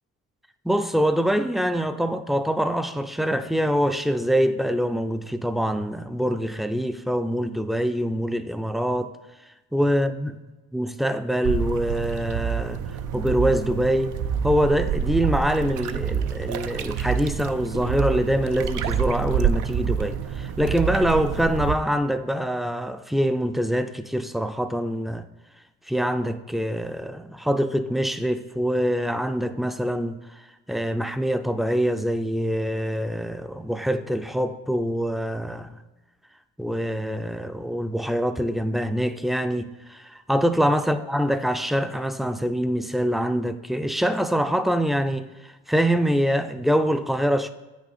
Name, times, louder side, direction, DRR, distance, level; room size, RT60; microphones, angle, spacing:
voice 1, 0.6-9.1 9.7-10.3 10.7-12.8 13.1-14.1 14.4-25.3 25.9-30.2 30.7-35.8 36.6-45.3 45.7-47.5, equal, ahead, 0.4 m, -24 dB
sound 1, 11.4-21.8, right 8 dB, 80° right, 0.6 m, -27 dB
8.3 x 6.2 x 4.1 m
cardioid pair, 90°, 30 cm